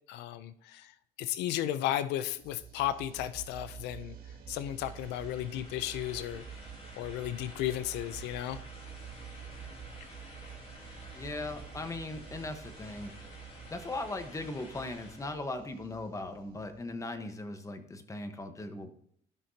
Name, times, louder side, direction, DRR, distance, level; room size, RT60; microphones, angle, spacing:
voice 1, 0.1-0.9 1.2-4.1 4.5-6.4 7.0-8.6, left 12 dB, 85° left, 13 dB, 0.5 m, -34 dB
sound 1, 2.3-17.1, right 7 dB, 60° right, 2.1 m, -48 dB
sound 2, 4.5-15.4, left 1 dB, 35° left, 2.2 m, -52 dB
voice 2, 11.1-13.1 13.7-18.9, left 2 dB, 20° left, 7 dB, 1.0 m, -39 dB
14.5 x 5.8 x 2.8 m, 0.68 s
cardioid pair, 110°, 17 cm